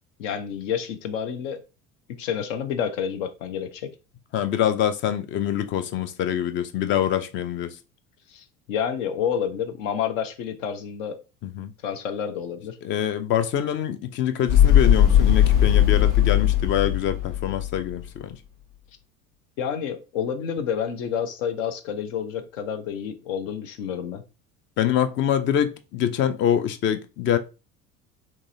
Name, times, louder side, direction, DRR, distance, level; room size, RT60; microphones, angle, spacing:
voice 1, 0.2-1.6 2.2-3.9 8.3-11.2 11.8-12.8 19.6-24.2, left 8 dB, 60° left, 0.7 m, -29 dB
voice 2, 4.3-7.8 11.4-11.7 12.8-18.4 24.8-27.4, left 10 dB, 30° left, 0.4 m, -25 dB
sound 1, 14.5-17.9, left 10 dB, 80° left, 1.9 m, -18 dB
3.7 x 3.0 x 2.6 m
figure-of-eight pair, 65°, 43 cm